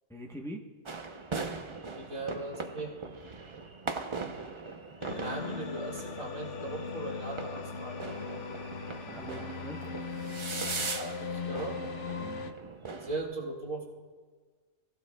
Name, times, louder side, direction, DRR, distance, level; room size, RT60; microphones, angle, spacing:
voice 1, 0.1-0.6 9.0-9.8 12.2-12.5, equal, 5° left, 1 dB, 0.8 m, -43 dB
sound 1, 0.9-13.2, right 4 dB, 35° right, 0.5 m, -40 dB
voice 2, 1.9-2.9 5.1-8.4 10.9-11.8 13.0-13.8, right 2 dB, 80° right, -3 dB, 2.6 m, -39 dB
sound 2, 5.0-12.5, left 5 dB, 65° left, 1.1 m, -39 dB
21.0 x 15.5 x 2.3 m, 1.5 s
omnidirectional pair, 1.4 m